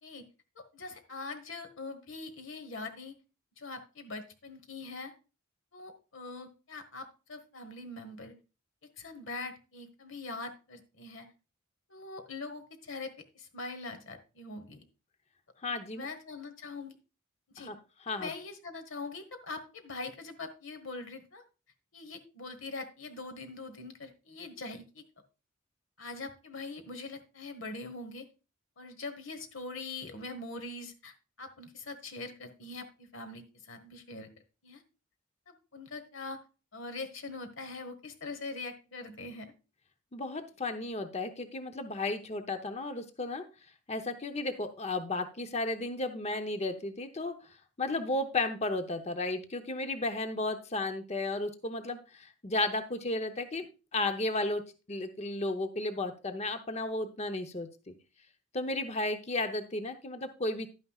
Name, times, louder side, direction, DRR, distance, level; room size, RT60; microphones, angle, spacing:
voice 1, 0.6-3.2 3.6-5.1 5.7-8.3 9.0-11.3 11.9-14.8 15.9-17.0 17.5-17.7 18.1-21.4 21.9-25.0 26.0-28.3 28.8-34.3 34.6-34.8 35.5-36.4 36.7-39.5, left 3 dB, 65° left, 7 dB, 1.3 m, -43 dB
voice 2, 15.6-16.0 17.6-17.8 18.1-18.3 40.1-43.4 43.9-47.3 47.8-53.7 53.9-54.6 54.9-57.9 58.5-60.7, left 2 dB, 30° left, 8 dB, 0.8 m, -33 dB
11.0 x 9.3 x 2.4 m, 0.32 s
head